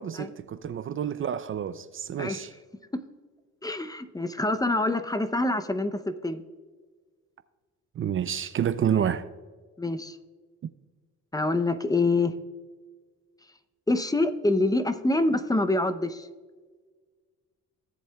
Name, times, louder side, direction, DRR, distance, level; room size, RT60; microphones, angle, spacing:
voice 1, 0.0-2.5 8.0-9.2, right 9 dB, 45° right, 0.4 m, -29 dB
voice 2, 3.6-6.4 9.0-9.2 9.8-10.2 11.3-12.3 13.9-16.3, left 2 dB, 10° left, 0.6 m, -26 dB
17.0 x 7.5 x 2.3 m
cardioid pair, 90°, 30 cm